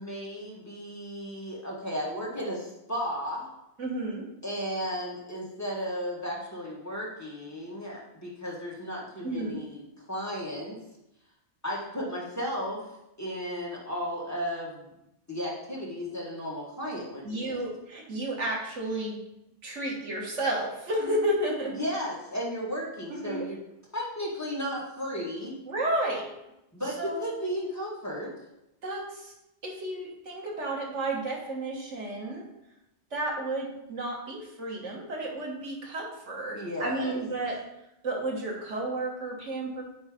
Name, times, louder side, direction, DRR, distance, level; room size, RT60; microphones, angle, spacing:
voice 1, 0.0-3.5 4.4-9.8 10.1-10.8 11.6-12.8 13.2-14.9 15.3-17.6 21.7-23.6 23.9-25.6 26.7-28.3 36.5-37.2, equal, 15° left, -5 dB, 1.6 m, -34 dB
voice 2, 3.8-4.3 9.2-9.6 17.2-19.2 19.6-21.8 23.1-23.5 25.7-26.3 27.0-27.3 28.8-29.3 29.6-32.5 33.1-37.6 38.0-39.8, right 1 dB, 85° right, -1 dB, 1.7 m, -32 dB
8.8 x 3.2 x 5.0 m, 0.87 s
omnidirectional pair, 1.2 m